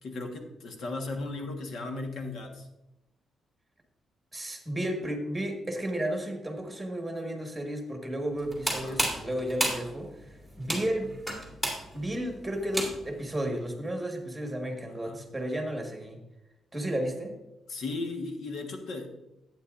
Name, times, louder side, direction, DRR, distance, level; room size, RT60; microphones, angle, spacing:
voice 1, 0.0-2.6 8.7-9.0 15.0-15.2 17.7-19.1, left 3 dB, 70° left, 3 dB, 1.4 m, -36 dB
voice 2, 4.3-11.1 11.9-16.2 16.7-17.3, right 1 dB, 5° right, 2 dB, 1.7 m, -33 dB
sound 1, 8.4-13.3, right 1 dB, 10° left, 2.2 m, -32 dB
11.5 x 8.9 x 2.6 m, 0.93 s
cardioid pair, 125°, 0 cm